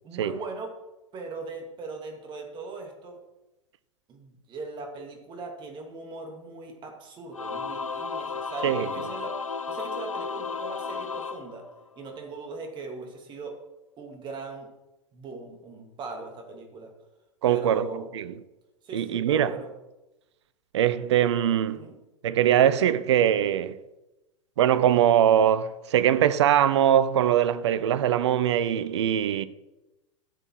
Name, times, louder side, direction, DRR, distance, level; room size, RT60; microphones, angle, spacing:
voice 1, 0.0-0.8 1.1-3.2 4.1-9.4 9.7-11.7 12.0-13.6 14.0-14.7 15.1-16.9 17.4-18.1 18.8-19.7 21.7-21.9, right 3 dB, 30° right, 2.5 m, -39 dB
Singing / Musical instrument, 7.3-12.2, left 5 dB, 85° left, 0.5 m, -33 dB
voice 2, 17.4-17.9 18.2-18.3 18.9-19.5 20.7-21.8 22.2-23.8 24.6-29.5, right 10 dB, 60° right, 0.7 m, -22 dB
13.0 x 7.7 x 4.7 m
figure-of-eight pair, 95°, 17 cm